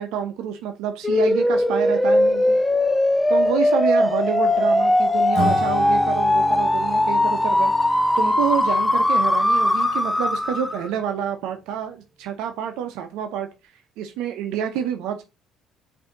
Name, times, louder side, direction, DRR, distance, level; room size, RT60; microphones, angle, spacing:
voice 1, 0.0-2.6 3.3-7.7 8.2-13.5 14.0-15.2, right 9 dB, 80° right, 0.6 m, -28 dB
sound 1, 1.0-10.9, left 1 dB, 10° left, 0.4 m, -20 dB
Acoustic guitar / Strum, 5.3-11.3, right 3 dB, 45° right, 1.5 m, -34 dB
5.0 x 2.7 x 3.7 m
cardioid pair, 105°, 0 cm